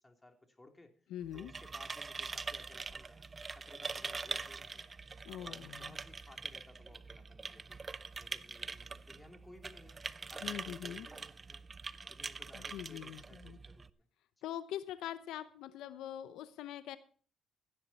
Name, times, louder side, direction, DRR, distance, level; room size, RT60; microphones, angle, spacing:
voice 1, 0.0-0.9 1.3-3.3 3.5-4.9 5.4-7.8 8.2-10.0 10.3-11.6 12.1-14.1 14.4-14.5, left 1 dB, 15° left, 4 dB, 2.9 m, -58 dB
voice 2, 1.1-1.5 5.2-6.0 10.4-11.1 12.5-13.6 14.4-17.0, left 11 dB, 90° left, 13 dB, 0.7 m, -43 dB
sound 1, 1.2-13.9, right 4 dB, 30° right, 0.6 m, -44 dB
15.5 x 10.0 x 4.2 m, 0.43 s
cardioid pair, 90°, 0 cm